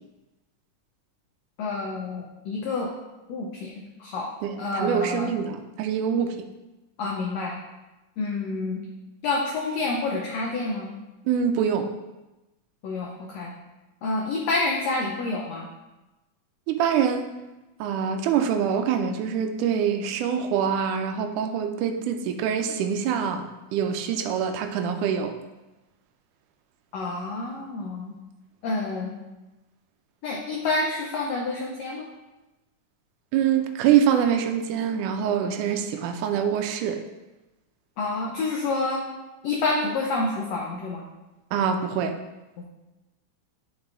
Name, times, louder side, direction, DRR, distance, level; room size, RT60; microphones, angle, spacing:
voice 1, 1.6-2.9 3.3-3.7 4.0-4.3 4.6-5.3 7.0-7.5 8.2-8.8 9.2-10.9 12.8-13.5 14.0-15.7 26.9-28.2 28.6-29.2 30.2-32.1 38.0-39.0 39.4-41.0, left 3 dB, 70° left, -1 dB, 1.7 m, -28 dB
voice 2, 4.4-6.5 11.3-11.9 16.7-17.3 17.8-23.5 23.7-25.3 33.3-37.0 41.5-42.2, right 8 dB, 85° right, 6 dB, 2.1 m, -25 dB
10.5 x 4.0 x 3.8 m, 1.0 s
omnidirectional pair, 3.7 m